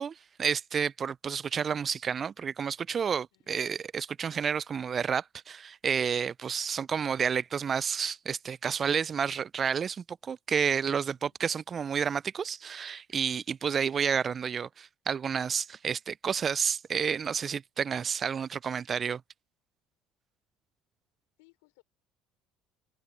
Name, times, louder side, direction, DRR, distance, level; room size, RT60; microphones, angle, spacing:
voice 1, 0.0-19.2, right 7 dB, 40° right, 0.4 m, -30 dB
voice 2, 3.3-3.7 11.1-11.4 21.4-21.8, left 27 dB, 75° left, 4.6 m, -65 dB
hypercardioid pair, 65°, 0 cm